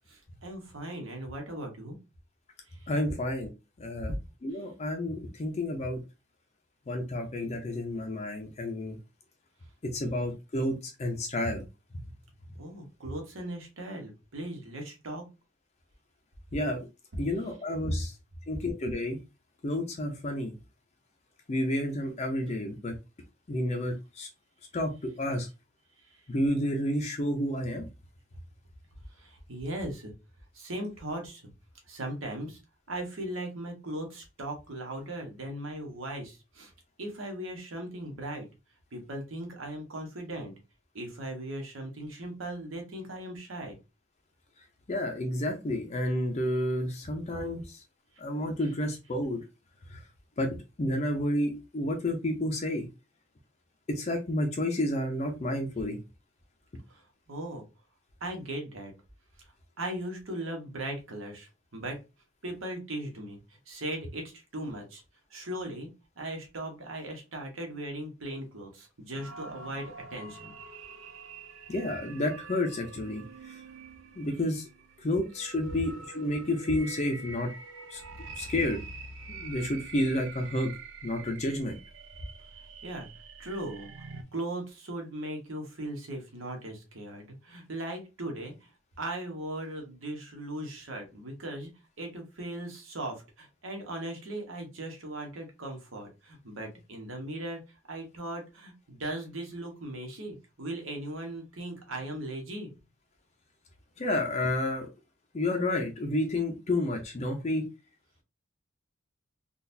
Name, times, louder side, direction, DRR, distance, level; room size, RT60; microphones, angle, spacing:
voice 1, 0.1-2.0 2.7-2.9 12.6-15.2 17.9-18.0 29.1-30.1 30.5-31.5 31.9-32.6 32.9-36.7 37.0-38.5 38.9-40.5 40.9-43.8 56.9-57.6 58.2-58.9 59.8-62.0 62.4-63.4 63.7-65.0 65.3-65.9 66.2-70.5 82.8-83.1 83.4-84.1 84.3-88.7 89.0-91.7 92.0-97.6 97.9-102.7, right 1 dB, 80° right, 2 dB, 1.1 m, -38 dB
voice 2, 2.9-3.5 3.8-4.1 4.4-6.0 6.9-9.0 9.9-11.6 16.5-16.9 17.2-18.1 18.5-19.2 19.6-20.5 21.5-22.9 23.5-24.3 24.7-25.5 26.3-27.8 44.9-47.8 48.2-49.4 49.9-50.0 50.4-50.5 50.8-52.9 53.9-56.0 71.7-73.6 74.2-74.7 75.0-77.5 77.9-78.0 78.4-78.8 79.3-80.7 81.0-81.8 104.0-104.9 105.3-107.6, left 1 dB, 35° left, 3 dB, 0.5 m, -30 dB
sound 1, 69.1-84.2, right 3 dB, 65° right, 0.5 m, -46 dB
3.9 x 2.4 x 2.6 m, 0.27 s
head